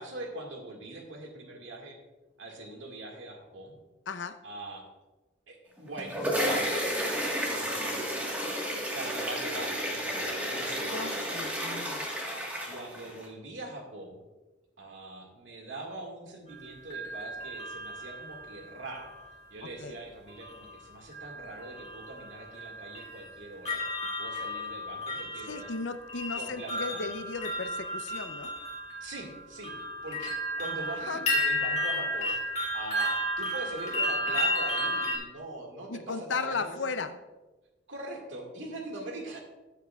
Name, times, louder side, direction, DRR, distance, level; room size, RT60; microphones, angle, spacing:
voice 1, 0.0-2.0 2.4-3.8 4.4-4.9 5.5-8.6 8.9-11.5 12.6-14.2 14.8-19.1 19.5-23.8 24.2-25.7 26.4-27.1 29.0-29.7 30.0-32.3 32.7-36.8 37.9-39.4, right 2 dB, 85° right, 1 dB, 2.0 m, -42 dB
voice 2, 4.1-4.4 10.9-12.1 19.6-20.0 25.5-28.5 31.1-31.2 35.9-37.1, left 4 dB, 75° left, 10 dB, 0.6 m, -36 dB
sound 1, 5.8-13.3, equal, 10° right, 1.4 m, -32 dB
sound 2, 16.5-19.3 20.4-20.8 21.1-35.2, left 1 dB, 35° left, 2.0 m, -33 dB
15.0 x 8.1 x 2.4 m, 1.1 s
head